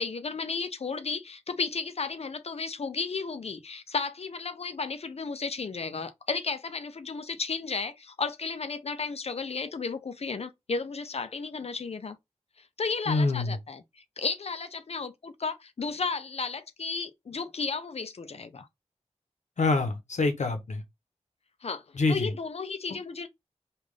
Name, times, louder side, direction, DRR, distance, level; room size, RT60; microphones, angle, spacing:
voice 1, 0.0-12.2 12.6-13.8 14.2-18.7 21.6-21.8 22.1-23.3, left 4 dB, 60° left, 0.5 m, -33 dB
voice 2, 13.1-13.5 19.6-20.8 22.0-22.3, left 3 dB, 80° left, 0.9 m, -26 dB
3.3 x 2.5 x 3.7 m
wide cardioid pair, 55°, 12 cm